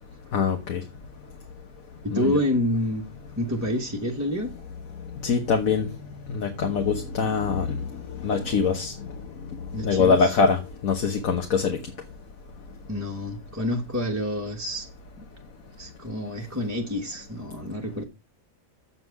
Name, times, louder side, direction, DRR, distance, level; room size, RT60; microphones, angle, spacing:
voice 1, 0.3-0.8 2.1-2.4 5.2-5.9 6.3-8.9 9.8-11.8, left 5 dB, 75° left, 1.6 m, -23 dB
voice 2, 2.0-3.1 3.4-4.5 9.7-10.4 12.9-14.9 15.2-15.3 15.8-18.0, left 1 dB, 15° right, 1.1 m, -28 dB
7.9 x 7.6 x 4.7 m
omnidirectional pair, 1.5 m